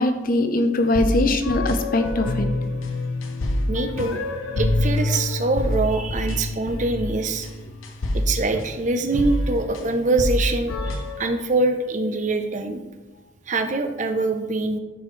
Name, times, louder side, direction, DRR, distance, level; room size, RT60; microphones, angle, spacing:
voice 1, 0.0-2.5, left 2 dB, 45° left, 7 dB, 0.6 m, -21 dB
sound 1, 0.9-11.2, left 1 dB, 80° left, 0.8 m, -26 dB
voice 2, 3.7-4.2 4.6-7.5 8.1-12.8 13.5-14.8, right 2 dB, 35° right, 6 dB, 0.6 m, -24 dB
10.5 x 5.1 x 3.2 m, 1.2 s
head